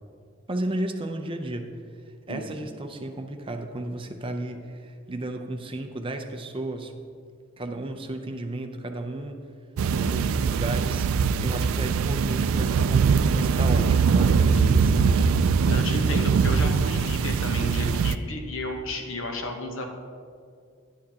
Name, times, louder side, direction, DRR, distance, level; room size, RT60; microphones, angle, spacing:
voice 1, 0.5-1.7 2.3-6.9 7.6-9.4 9.9-11.1 11.4-15.3, right 1 dB, 25° right, 5 dB, 0.5 m, -33 dB
sound 1, 9.8-18.2, right 5 dB, 85° right, 0.3 m, -22 dB
voice 2, 15.7-19.8, left 2 dB, 70° left, 3 dB, 1.0 m, -33 dB
10.5 x 9.0 x 2.8 m, 2.2 s
head